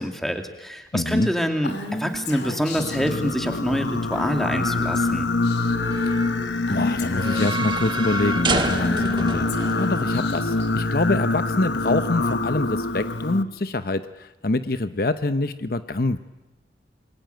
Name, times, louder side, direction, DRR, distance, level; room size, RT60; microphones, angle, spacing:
voice 1, 0.0-5.3, equal, ahead, 5 dB, 2.5 m, -26 dB
voice 2, 0.9-1.3 5.9-6.2 6.7-9.5 9.7-16.2, left 2 dB, 55° left, 11 dB, 0.9 m, -25 dB
Female speech woman speaking / Whispering, 1.6-3.1 4.1-4.5 4.9-5.1 5.4-5.9 6.7-7.8 8.7-10.7, left 2 dB, 75° left, 2.9 m, -35 dB
Singing, 2.7-13.4, left 3 dB, 90° left, 1.2 m, -25 dB
sound 1, 2.9-11.1, right 3 dB, 25° right, 1.7 m, -32 dB
27.5 x 22.5 x 9.3 m, 1.1 s
head